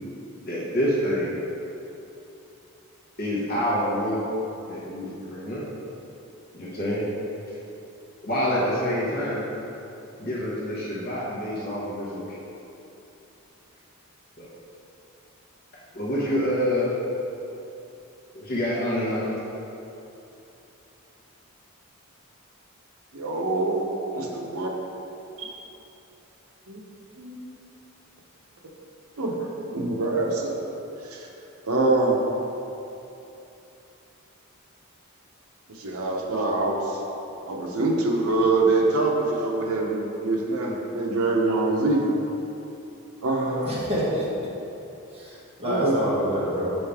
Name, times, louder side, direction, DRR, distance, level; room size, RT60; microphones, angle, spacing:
voice 1, 0.4-1.3 3.2-4.2 4.7-5.6 6.5-7.1 8.2-9.5 10.2-12.3 14.4-14.5 15.9-16.9 18.3-19.4, equal, 45° left, -8 dB, 1.0 m, -27 dB
voice 2, 23.1-23.8 24.1-24.7 25.4-25.5 26.7-26.8 27.2-27.4 29.2-29.4 29.7-30.6 31.0-31.3 31.7-32.2 35.7-37.0 37.5-42.0 43.2-43.8 45.6-46.0, right 2 dB, 80° right, -1 dB, 0.8 m, -24 dB
voice 3, 43.6-44.3 45.1-46.8, equal, 25° right, -8 dB, 1.4 m, -27 dB
5.5 x 5.3 x 3.5 m, 2.9 s
head